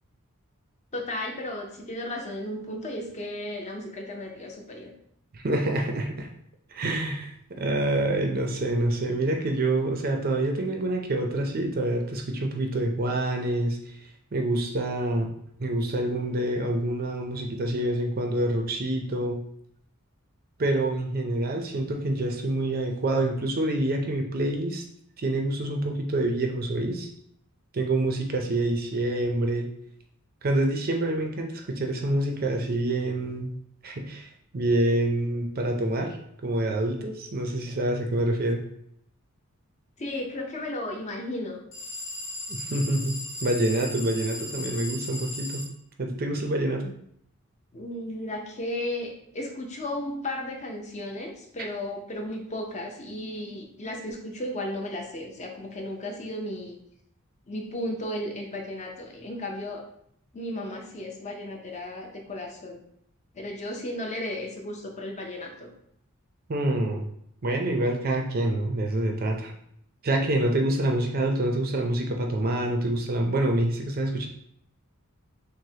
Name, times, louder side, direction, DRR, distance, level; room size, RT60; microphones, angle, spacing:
voice 1, 0.9-4.9 40.0-41.6 47.7-56.8 57.5-59.8 60.3-62.8 63.3-65.7, left 1 dB, 30° left, 1 dB, 0.6 m, -34 dB
voice 2, 5.3-6.3 6.7-13.8 14.3-15.3 15.6-19.4 20.6-24.8 25.2-27.1 27.7-29.7 30.4-33.5 33.8-34.3 34.5-36.2 36.4-38.6 42.5-45.7 46.0-46.9 66.5-67.1 67.4-69.5 70.0-74.3, right 1 dB, 45° right, 3 dB, 0.5 m, -26 dB
sound 1, 41.7-45.7, left 1 dB, 65° left, 1.4 m, -36 dB
6.2 x 2.1 x 2.8 m, 0.70 s
head